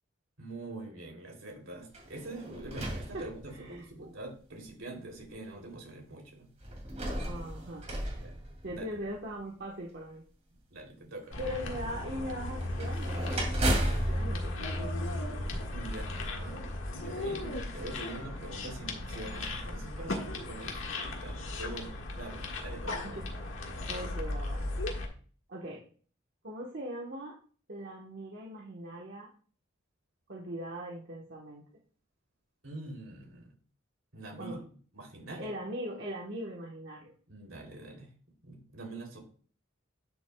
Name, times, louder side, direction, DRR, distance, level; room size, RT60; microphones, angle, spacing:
voice 1, 0.4-6.5 8.2-8.3 8.7-9.1 10.7-11.4 15.7-23.2 32.6-33.5 34.1-34.7 34.9-35.5 37.3-38.1 38.4-39.2, right 2 dB, 75° right, 1 dB, 3.0 m, -44 dB
sound 1, 1.9-3.9 4.7-4.8 6.6-9.2 12.6-15.6, right 1 dB, 35° right, 2.5 m, -35 dB
voice 2, 3.5-4.1 7.2-8.2 8.6-10.2 11.4-13.3 13.7-15.2 23.0-23.2 23.8-25.0 25.5-25.8 26.4-27.4 27.7-29.3 30.3-31.6 34.4-34.6 35.4-37.1, equal, 55° right, -2 dB, 1.2 m, -40 dB
sound 2, 11.3-25.0, left 1 dB, 75° left, 1.6 m, -36 dB
11.0 x 6.6 x 2.2 m, 0.43 s
head